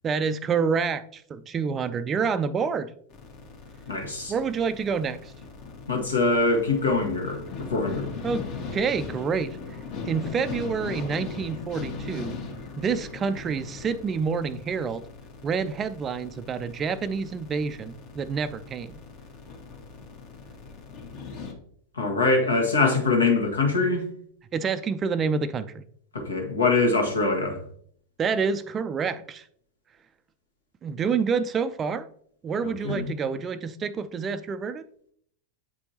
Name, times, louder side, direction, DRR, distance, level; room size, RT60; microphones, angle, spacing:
voice 1, 0.0-2.9 4.3-5.3 8.2-9.6 10.1-12.4 12.8-15.0 15.4-19.0 24.5-25.8 28.2-29.4 30.8-32.1 32.4-34.8, right 5 dB, 25° right, 0.4 m, -28 dB
sound 1, 3.1-21.5, left 4 dB, 40° left, 1.3 m, -39 dB
voice 2, 3.9-4.3 5.9-7.4 7.7-8.1 22.0-24.0 26.1-27.6 32.6-33.1, left 3 dB, 75° left, 1.4 m, -23 dB
8.3 x 5.1 x 2.8 m
figure-of-eight pair, 90°, 0 cm